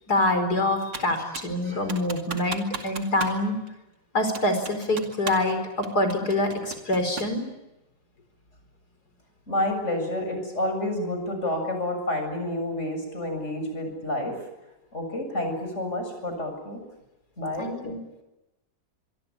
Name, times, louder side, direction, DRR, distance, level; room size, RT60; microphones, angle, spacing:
voice 1, 0.1-3.6 4.1-7.4 17.6-18.0, left 1 dB, 60° left, 7 dB, 5.3 m, -25 dB
Computer keyboard, 0.9-1.6 1.9-3.4 3.7-3.8 4.3-5.5 5.8-7.4, right 5 dB, 85° right, 3.1 m, -36 dB
voice 2, 9.5-14.4 14.9-16.8 17.4-17.7, left 1 dB, 40° left, 5 dB, 7.5 m, -29 dB
25.0 x 24.0 x 8.7 m, 0.98 s
omnidirectional pair, 1.9 m